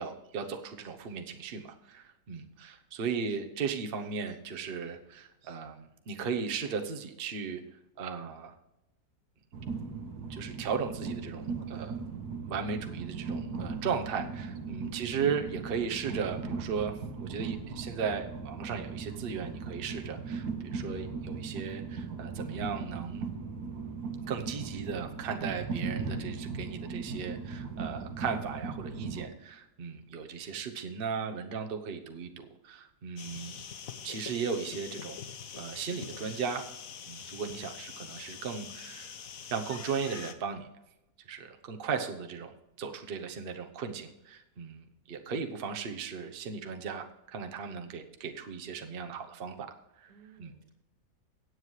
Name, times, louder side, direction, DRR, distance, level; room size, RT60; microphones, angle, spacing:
voice 1, 0.0-7.6 8.0-8.5 10.3-11.9 12.4-23.2 24.3-33.6 34.0-35.3 35.5-36.6 37.1-39.1 39.5-40.7 41.3-50.1 50.4-50.5, right 6 dB, 40° right, 4 dB, 1.0 m, -36 dB
Train, 9.5-29.3, right 4 dB, 65° right, 1.7 m, -38 dB
voice 2, 11.4-11.9 14.6-14.8 50.1-50.7, right 5 dB, 80° right, 3 dB, 2.1 m, -57 dB
sound 1, 33.2-40.3, left 7 dB, 60° left, 1.2 m, -44 dB
16.5 x 8.1 x 3.2 m, 0.90 s
omnidirectional pair, 1.8 m